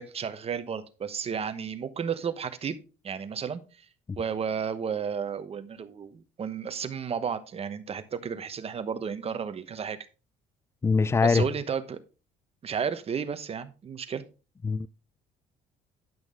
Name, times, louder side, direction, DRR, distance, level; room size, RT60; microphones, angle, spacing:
voice 1, 0.0-2.8 3.0-3.6 4.2-10.0 11.2-12.0 12.6-14.2, right 7 dB, 35° right, 1.0 m, -32 dB
voice 2, 10.8-11.5 14.6-14.9, left 4 dB, 15° left, 0.3 m, -23 dB
10.5 x 6.1 x 3.6 m
cardioid pair, 110°, 17 cm